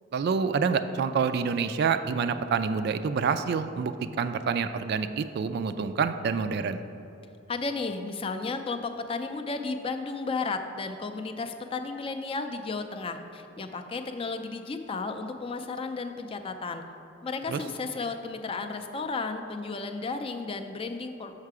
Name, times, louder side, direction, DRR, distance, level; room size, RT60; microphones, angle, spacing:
voice 1, 0.1-6.8 17.5-17.6, right 5 dB, 55° right, 10 dB, 0.3 m, -27 dB
voice 2, 7.5-16.8 17.2-21.3, left 4 dB, 30° left, 6 dB, 0.4 m, -33 dB
6.5 x 5.8 x 4.7 m, 2.8 s
head